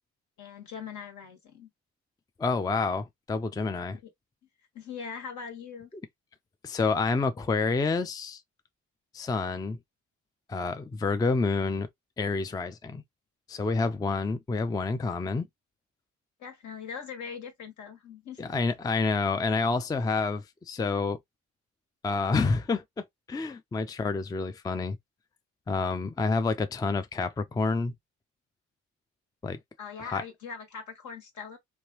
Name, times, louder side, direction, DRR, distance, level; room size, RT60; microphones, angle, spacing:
voice 1, 0.4-1.7 4.0-4.1 4.7-5.9 16.4-18.6 29.8-31.6, left 6 dB, 70° left, 1.6 m, -41 dB
voice 2, 2.4-4.0 6.6-8.4 9.1-9.8 10.5-11.9 12.2-13.0 13.5-15.5 18.4-21.2 22.0-25.0 25.7-27.9 29.4-29.6 30.0-30.2, left 4 dB, 15° left, 0.4 m, -28 dB
3.1 x 2.6 x 2.9 m
cardioid pair, 90°, 30 cm